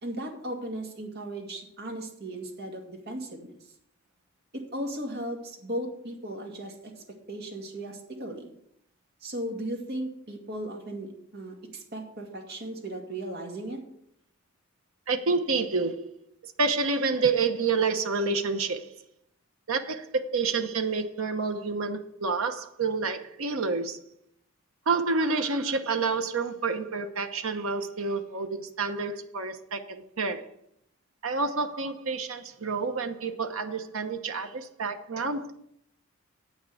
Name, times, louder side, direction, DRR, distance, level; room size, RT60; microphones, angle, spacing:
voice 1, 0.0-3.5 4.5-6.9 7.3-8.5 9.2-13.8, right 1 dB, 50° right, 2 dB, 2.2 m, -36 dB
voice 2, 15.1-16.1 16.4-18.9 19.7-24.0 24.9-30.5 31.2-35.5, right 4 dB, 80° right, 7 dB, 1.0 m, -28 dB
8.5 x 6.6 x 7.9 m, 0.73 s
head